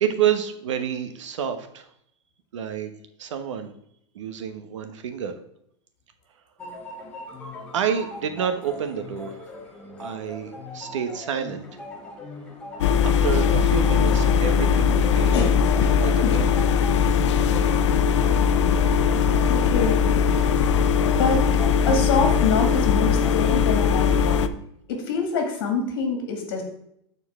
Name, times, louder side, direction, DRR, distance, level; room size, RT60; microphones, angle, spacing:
voice 1, 0.0-1.9 2.5-2.9 3.2-3.7 4.1-5.3 7.7-9.4 10.0-11.7 12.8-15.4 16.0-16.5, right 8 dB, 85° right, 8 dB, 1.2 m, -28 dB
sound 1, 6.6-24.1, left 2 dB, 5° left, 0.9 m, -39 dB
sound 2, 12.8-24.5, left 7 dB, 75° left, 0.6 m, -20 dB
voice 2, 15.3-16.3 19.5-20.0 21.2-21.4 21.9-24.5 24.9-26.6, left 4 dB, 50° left, 2 dB, 2.3 m, -26 dB
13.5 x 4.5 x 3.6 m, 0.73 s
supercardioid pair, 180°, 15 cm